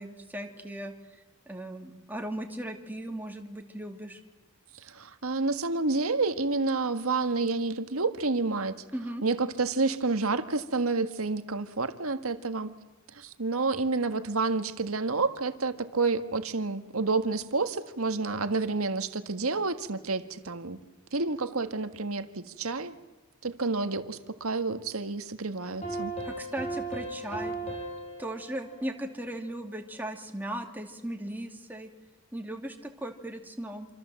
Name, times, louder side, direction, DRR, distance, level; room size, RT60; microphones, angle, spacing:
voice 1, 0.0-4.2 8.9-9.2 26.2-27.5 28.2-31.9 32.3-33.9, right 1 dB, 10° right, 3 dB, 2.3 m, -37 dB
voice 2, 4.8-8.8 9.2-12.7 13.1-20.8 21.1-22.9 23.4-26.1, right 3 dB, 75° right, 9 dB, 1.6 m, -29 dB
sound 1, 25.6-29.8, right 2 dB, 30° left, 6.6 m, -37 dB
27.0 x 26.5 x 7.7 m, 1.1 s
head